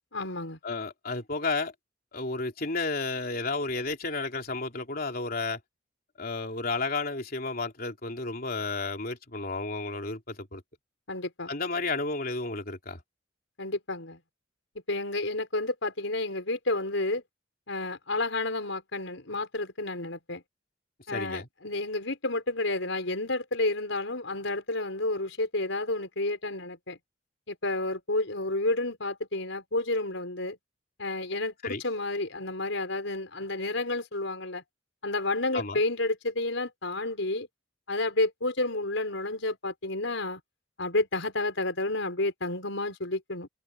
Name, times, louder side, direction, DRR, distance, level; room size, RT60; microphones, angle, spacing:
voice 1, 0.1-0.6 11.1-11.5 13.6-14.2 14.9-17.2 17.7-20.4 21.1-27.0 27.5-30.6 31.0-34.6 35.0-37.5 37.9-40.4 40.8-43.5, left 2 dB, 85° left, 4.9 m, -30 dB
voice 2, 0.6-1.7 2.1-5.6 6.2-10.6 11.5-13.0 21.1-21.5 31.6-31.8 35.5-35.8, left 3 dB, 50° left, 3.4 m, -32 dB
open air
head